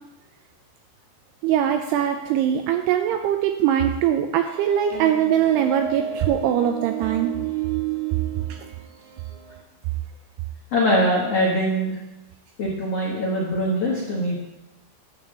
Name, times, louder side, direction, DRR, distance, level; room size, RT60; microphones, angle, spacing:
voice 1, 1.4-7.3 8.5-8.7, right 10 dB, 85° right, 5 dB, 2.4 m, -22 dB
sound 1, 4.4-9.6, right 10 dB, 65° right, 2.9 m, -32 dB
voice 2, 10.7-11.9 12.6-14.4, equal, 75° left, -4 dB, 1.4 m, -22 dB
11.5 x 4.0 x 7.5 m, 0.99 s
omnidirectional pair, 5.1 m